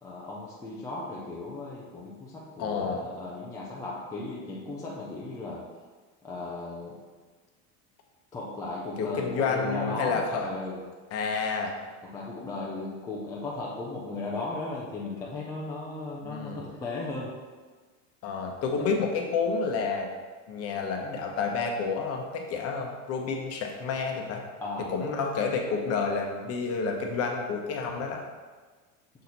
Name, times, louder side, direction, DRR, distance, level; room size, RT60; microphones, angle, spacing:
voice 1, 0.0-5.7 6.2-7.0 8.3-10.8 12.0-17.4 24.6-24.9, left 2 dB, 10° left, -5 dB, 0.4 m, -36 dB
voice 2, 2.6-3.0 9.0-10.5 11.1-11.8 16.2-16.6 18.2-20.1 20.5-24.4 24.9-28.2, left 4 dB, 35° left, 2 dB, 0.9 m, -29 dB
6.4 x 4.3 x 4.1 m, 1.4 s
supercardioid pair, 155°, 42 cm